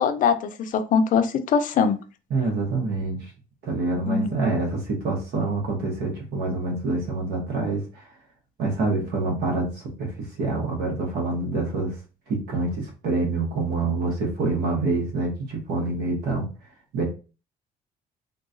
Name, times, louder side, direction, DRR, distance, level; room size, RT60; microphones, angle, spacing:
voice 1, 0.0-2.0 4.1-4.4, left 6 dB, 50° left, 0.5 m, -22 dB
voice 2, 2.3-3.3 3.6-8.0 8.6-11.9 12.3-16.5 16.9-17.0, right 3 dB, 70° right, 1.0 m, -26 dB
3.8 x 2.3 x 2.5 m
cardioid pair, 110°, 17 cm